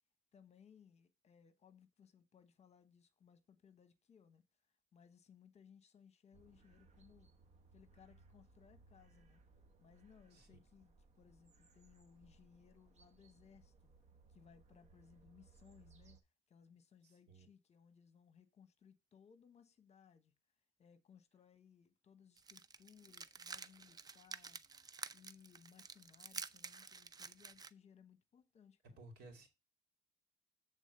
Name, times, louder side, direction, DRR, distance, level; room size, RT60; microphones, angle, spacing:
voice 1, 0.3-4.4 4.9-7.3 7.7-9.4 9.8-13.9 14.3-16.2 16.5-20.3 20.8-24.6 25.1-29.1, left 7 dB, 40° left, 1.0 m, -65 dB
sound 1, 6.3-16.2, right 3 dB, 40° right, 1.2 m, -66 dB
voice 2, 17.0-17.5 29.0-29.5, right 2 dB, 75° right, 2.6 m, -58 dB
sound 2, 22.4-27.7, right 5 dB, 25° right, 0.5 m, -50 dB
8.3 x 3.7 x 6.6 m
cardioid pair, 110°, 17 cm